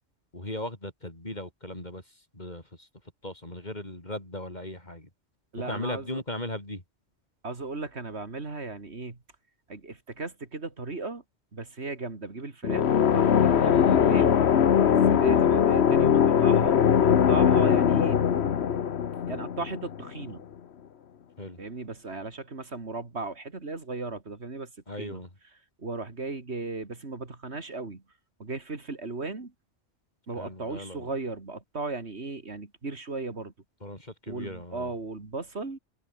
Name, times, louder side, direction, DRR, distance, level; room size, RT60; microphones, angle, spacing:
voice 1, 0.3-2.9 3.2-5.1 5.6-6.8 13.7-14.0 15.1-15.4 21.4-21.6 24.9-25.3 30.4-31.1 33.8-34.9, left 1 dB, 40° left, 5.5 m, -38 dB
voice 2, 5.5-6.2 7.4-9.2 9.7-11.2 11.5-14.3 14.9-18.2 19.3-20.5 21.6-24.7 25.0-25.2 25.8-28.0 28.4-29.5 30.3-33.5 34.3-35.8, right 3 dB, 65° right, 3.0 m, -36 dB
sound 1, 12.6-20.3, left 8 dB, 65° left, 1.2 m, -21 dB
omnidirectional pair, 1.2 m